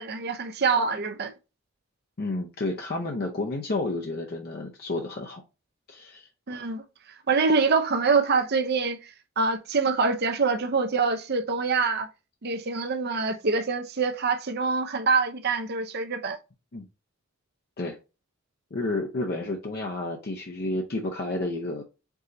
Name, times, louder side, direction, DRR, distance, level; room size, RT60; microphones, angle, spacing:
voice 1, 0.0-1.3 6.5-6.8 7.3-9.0 9.4-12.1 12.4-16.4, right 4 dB, 50° right, 0.6 m, -25 dB
voice 2, 2.2-5.4 5.9-6.3 16.7-16.9 17.8-18.0 18.7-21.8, left 2 dB, 50° left, 0.6 m, -31 dB
4.8 x 3.8 x 2.6 m
head